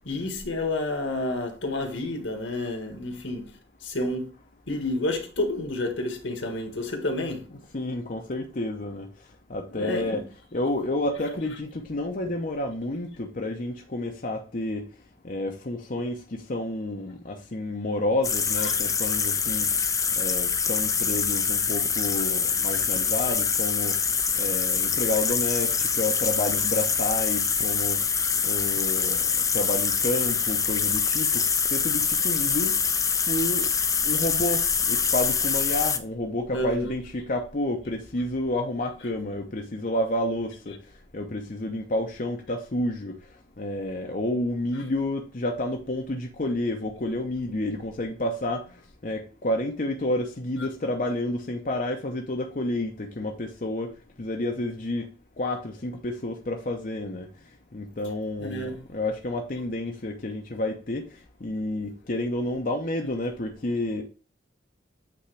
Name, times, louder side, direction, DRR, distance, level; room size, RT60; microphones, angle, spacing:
voice 1, 0.0-3.5 3.8-4.3 4.7-7.4 9.7-10.2 18.6-18.7 36.5-36.9 58.4-58.8, left 2 dB, 75° left, 1.6 m, -30 dB
voice 2, 7.5-9.1 9.5-10.3 10.5-14.9 15.2-19.7 20.2-24.0 24.4-28.0 28.4-31.4 31.7-32.8 33.3-33.7 34.0-40.8 41.1-43.2 43.6-48.7 49.0-53.9 54.2-55.1 55.4-57.3 57.7-61.0 61.4-64.0, left 1 dB, 45° left, 0.8 m, -30 dB
sound 1, 18.2-36.0, left 6 dB, 15° left, 0.5 m, -25 dB
8.5 x 3.6 x 3.3 m
head